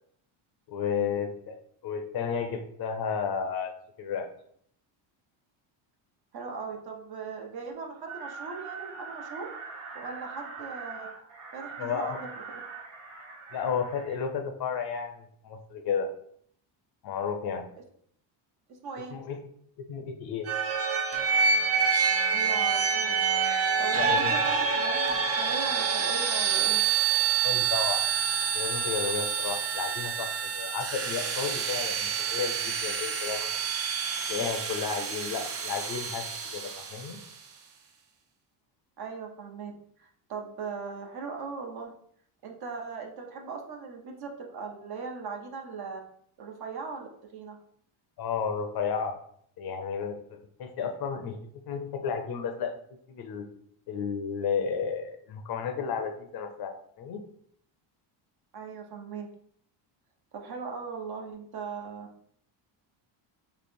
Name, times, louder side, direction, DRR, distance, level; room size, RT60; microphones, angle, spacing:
voice 1, 0.7-1.6 1.8-3.7 4.0-4.3 11.8-12.2 13.5-16.1 17.0-17.7 19.1-19.4 19.9-20.5 24.0-24.3 27.4-28.0 28.5-33.5 34.3-36.2 36.5-37.2 48.2-49.2 49.6-50.2 50.6-51.4 51.7-52.8 53.1-53.4 53.9-57.2, left 6 dB, 50° left, 6 dB, 0.6 m, -32 dB
voice 2, 6.3-9.5 9.9-11.1 11.5-12.6 18.8-19.2 22.3-23.3 23.8-26.8 39.0-39.7 40.0-41.9 42.4-46.0 46.4-47.6 58.5-59.3 60.3-62.1, right 5 dB, 50° right, 2 dB, 0.9 m, -39 dB
sound 1, 8.1-14.3, right 5 dB, 75° right, 1.3 m, -42 dB
sound 2, 20.5-37.2, right 6 dB, 30° right, 0.4 m, -27 dB
3.2 x 2.9 x 4.3 m, 0.65 s
cardioid pair, 140°, 48 cm